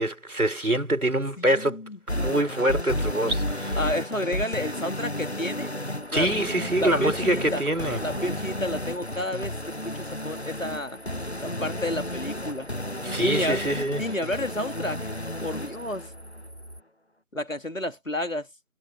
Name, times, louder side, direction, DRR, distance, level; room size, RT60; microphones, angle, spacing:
voice 1, 0.0-1.8 2.1-3.8 6.1-8.0 13.0-14.0, right 1 dB, 85° right, 4.2 m, -25 dB
voice 2, 1.4-2.0 3.8-5.7 6.1-6.3 6.8-7.7 8.0-11.0 11.4-12.7 13.2-13.6 14.0-15.1 15.4-16.1 17.3-18.5, left 1 dB, 65° left, 2.6 m, -30 dB
sound 1, 2.1-16.1, left 1 dB, 50° left, 0.7 m, -32 dB
sound 2, 5.9-16.8, equal, 50° right, 3.9 m, -46 dB
figure-of-eight pair, 180°, 43 cm